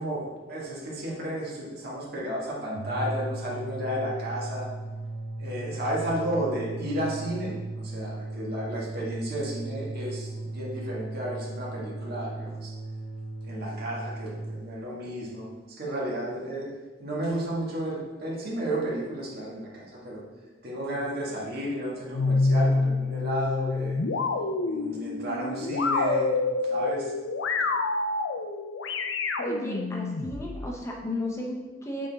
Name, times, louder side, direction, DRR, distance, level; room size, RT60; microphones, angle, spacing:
voice 1, 0.0-4.7 5.4-12.7 13.5-15.5 15.8-16.7 17.0-20.2 20.6-23.9 24.6-26.3 26.7-27.1, right 1 dB, 55° right, -4 dB, 1.7 m, -32 dB
sound 1, 2.6-14.6, right 2 dB, 80° right, 1.7 m, -37 dB
sound 2, 22.1-30.7, left 3 dB, 75° left, 0.6 m, -27 dB
voice 2, 29.4-32.1, left 1 dB, 15° left, -2 dB, 0.8 m, -33 dB
8.5 x 4.2 x 3.5 m, 1.2 s
head